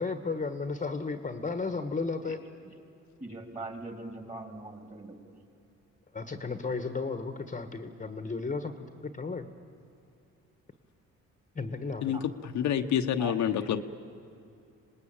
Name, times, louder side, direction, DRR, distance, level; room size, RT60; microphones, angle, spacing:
voice 1, 0.0-2.4 6.1-8.7 9.0-9.5 11.5-12.2 12.6-12.7, left 4 dB, 25° left, 9 dB, 1.3 m, -34 dB
voice 2, 3.2-5.2 12.1-12.2 13.2-13.5, right 2 dB, 25° right, 5 dB, 3.5 m, -41 dB
voice 3, 12.0-13.8, left 9 dB, 70° left, 6 dB, 1.1 m, -28 dB
25.5 x 19.5 x 8.9 m, 2.6 s
cardioid pair, 90°, 30 cm